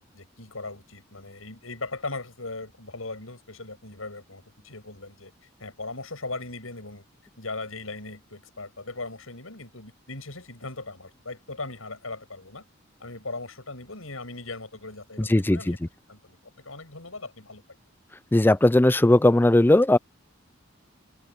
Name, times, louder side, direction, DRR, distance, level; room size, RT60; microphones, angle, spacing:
voice 1, 0.1-5.3 5.6-7.1 7.4-12.6 13.0-15.8 16.1-16.4 16.6-17.6, left 3 dB, 90° left, 7.8 m, -38 dB
voice 2, 15.3-15.8 18.3-20.0, left 1 dB, 10° left, 0.4 m, -18 dB
head